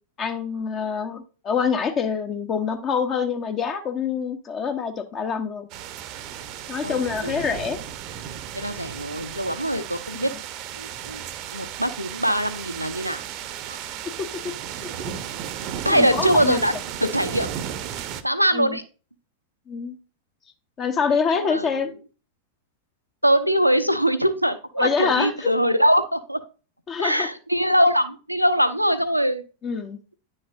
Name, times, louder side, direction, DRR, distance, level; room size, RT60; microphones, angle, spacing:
voice 1, 0.2-5.7 6.7-7.8 10.1-10.3 14.8-15.1 15.9-16.6 18.5-18.8 19.7-19.9 20.8-21.9 24.8-25.5 26.9-27.3 29.6-30.0, left 6 dB, 30° left, 6 dB, 0.9 m, -26 dB
sound 1, 5.7-18.2, right 9 dB, 40° right, 0.7 m, -34 dB
voice 2, 6.8-7.3 8.5-10.3 10.8-11.2 11.5-13.2 13.7-13.8 15.8-16.7 17.0-17.5 18.2-18.8 21.3-21.9 23.2-26.4 27.0-29.4, equal, 90° right, 12 dB, 0.7 m, -22 dB
10.0 x 6.4 x 2.5 m, 0.35 s
figure-of-eight pair, 90°, 0 cm